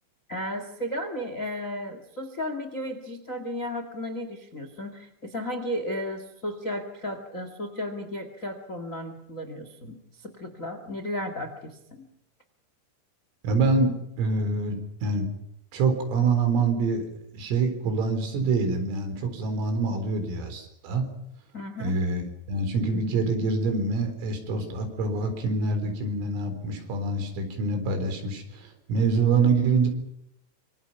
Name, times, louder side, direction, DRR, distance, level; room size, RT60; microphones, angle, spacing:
voice 1, 0.3-12.1 21.5-22.0, left 1 dB, 85° left, 8 dB, 0.7 m, -34 dB
voice 2, 13.4-15.3 15.7-17.0 17.3-21.1 21.8-29.9, right 3 dB, 90° right, 7 dB, 6.6 m, -26 dB
26.0 x 25.0 x 5.8 m, 0.78 s
omnidirectional pair, 5.7 m